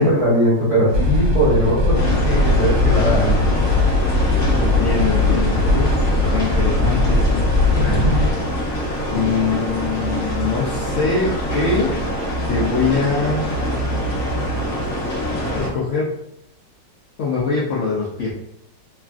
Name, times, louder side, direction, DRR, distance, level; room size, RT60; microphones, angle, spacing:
voice 1, 0.0-3.5 7.7-8.3, equal, 25° right, -9 dB, 0.8 m, -19 dB
sound 1, 0.9-8.3, left 2 dB, 60° right, 1.1 m, -19 dB
sound 2, 1.9-15.7, equal, 50° left, 0.9 m, -24 dB
voice 2, 4.5-7.5 9.1-12.0 12.4-13.5 15.5-16.2 17.2-18.3, left 4 dB, 85° left, -4 dB, 0.6 m, -23 dB
3.3 x 2.3 x 2.4 m, 0.78 s
omnidirectional pair, 1.9 m